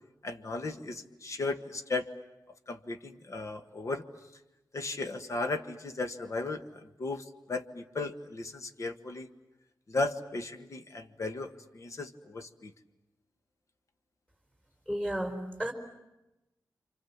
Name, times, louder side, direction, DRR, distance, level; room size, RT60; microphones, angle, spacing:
voice 1, 0.2-2.1 2.7-4.1 4.7-6.6 7.0-9.3 9.9-12.7, left 3 dB, 50° left, 7 dB, 1.5 m, -35 dB
voice 2, 14.9-15.7, equal, 15° left, 4 dB, 4.7 m, -32 dB
29.0 x 27.0 x 7.3 m, 0.97 s
wide cardioid pair, 130°, 7 cm